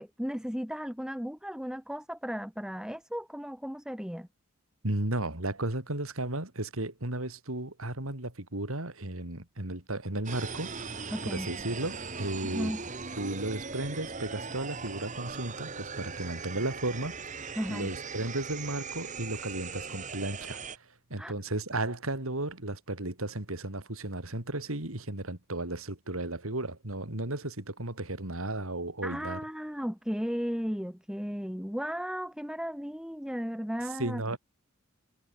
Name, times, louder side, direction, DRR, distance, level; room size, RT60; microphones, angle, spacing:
voice 1, 0.0-4.3 11.1-11.5 12.4-12.8 17.6-17.9 21.2-21.3 29.0-34.4, equal, 5° right, 1.8 m, -35 dB
voice 2, 4.8-11.0 11.3-12.7 13.2-20.6 21.1-29.4 34.0-34.4, right 2 dB, 80° right, 3.8 m, -34 dB
sound 1, 10.2-20.8, right 4 dB, 35° right, 2.0 m, -39 dB
head